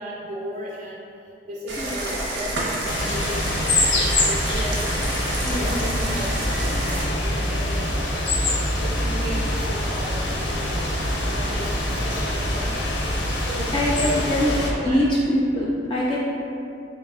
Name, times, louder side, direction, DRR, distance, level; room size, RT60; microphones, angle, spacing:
voice 1, 0.0-4.9 5.3-6.3 6.8-8.3 8.8-10.8 11.2-13.0 13.4-14.3 14.8-15.1, right 1 dB, 50° right, -4 dB, 0.4 m, -36 dB
sound 1, 1.7-7.0, right 1 dB, 85° right, 0.7 m, -29 dB
sound 2, 2.8-14.7, left 1 dB, 85° left, 0.5 m, -24 dB
voice 2, 5.5-5.9 13.7-14.6 14.8-16.3, left 1 dB, 25° left, -7 dB, 0.3 m, -23 dB
3.8 x 2.1 x 3.5 m, 2.6 s
head